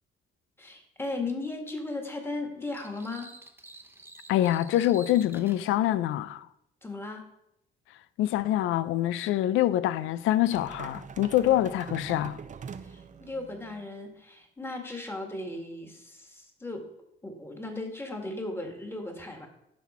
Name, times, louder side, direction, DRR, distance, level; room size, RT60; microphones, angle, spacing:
voice 1, 0.6-3.3 6.8-7.3 11.4-11.6 12.8-16.9 17.2-19.5, left 2 dB, 10° left, 1.7 m, -36 dB
sound 1, 2.7-5.6, right 2 dB, 10° right, 0.9 m, -49 dB
voice 2, 4.3-6.5 8.2-12.4, left 13 dB, 90° left, 0.4 m, -25 dB
sound 2, 10.5-13.9, right 6 dB, 40° right, 0.6 m, -43 dB
11.5 x 4.2 x 4.3 m
cardioid pair, 90°, 20 cm